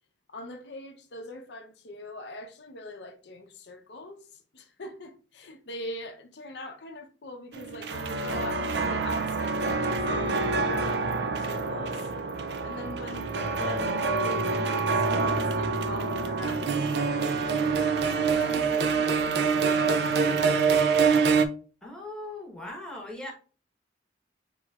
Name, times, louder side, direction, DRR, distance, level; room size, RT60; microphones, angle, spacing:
voice 1, 0.3-12.1 12.6-21.3, left 1 dB, 65° left, 0.7 m, -42 dB
sound 1, 7.5-21.4, right 4 dB, 60° right, 0.4 m, -26 dB
voice 2, 21.8-23.3, left 2 dB, 5° left, 1.1 m, -39 dB
5.5 x 3.0 x 2.4 m
head